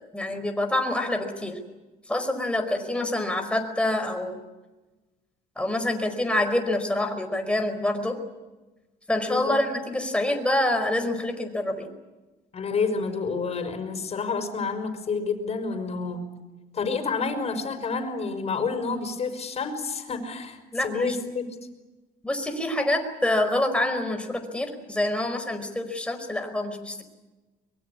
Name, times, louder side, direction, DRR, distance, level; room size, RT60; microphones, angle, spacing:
voice 1, 0.1-1.6 2.1-4.4 5.6-8.2 9.1-11.9 20.7-21.1 22.2-27.0, left 1 dB, 5° left, 5 dB, 4.9 m, -26 dB
voice 2, 12.5-16.2 16.7-21.4, left 4 dB, 40° left, 6 dB, 5.8 m, -29 dB
24.0 x 23.0 x 8.7 m, 1.1 s
cardioid pair, 110°, 17 cm